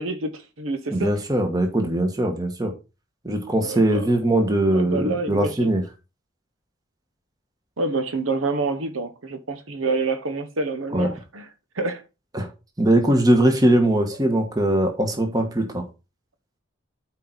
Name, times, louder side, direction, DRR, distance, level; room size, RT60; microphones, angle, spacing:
voice 1, 0.0-1.2 3.5-4.0 4.7-5.7 7.8-11.5 11.7-12.0, right 3 dB, 85° right, 1.1 m, -27 dB
voice 2, 0.9-2.7 3.2-5.8 10.9-11.1 12.3-12.5 12.8-15.8, right 1 dB, 20° right, 1.2 m, -21 dB
8.4 x 4.5 x 4.0 m
head